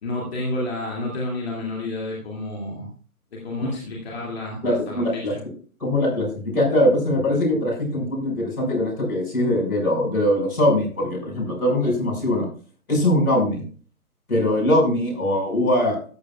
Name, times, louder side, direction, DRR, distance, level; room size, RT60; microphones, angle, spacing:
voice 1, 0.0-2.9 3.3-5.4, left 2 dB, 45° left, -3 dB, 2.5 m, -30 dB
voice 2, 4.6-5.3 5.8-12.5 12.9-13.6 14.3-16.0, left 1 dB, 75° left, 0 dB, 5.6 m, -21 dB
13.5 x 9.6 x 2.4 m, 0.43 s
figure-of-eight pair, 155°, 44 cm